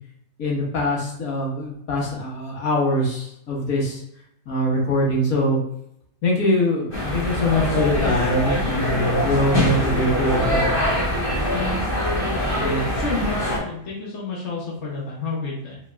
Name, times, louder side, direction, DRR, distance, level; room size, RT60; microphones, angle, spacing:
voice 1, 0.4-4.0 4.5-5.6 6.2-10.7 12.5-12.8, left 1 dB, 75° left, -2 dB, 1.7 m, -23 dB
sound 1, 6.9-13.6, left 1 dB, 40° left, 1.7 m, -23 dB
voice 2, 12.9-15.8, left 3 dB, 55° left, -6 dB, 1.3 m, -30 dB
5.3 x 3.8 x 2.3 m, 0.73 s
omnidirectional pair, 1.5 m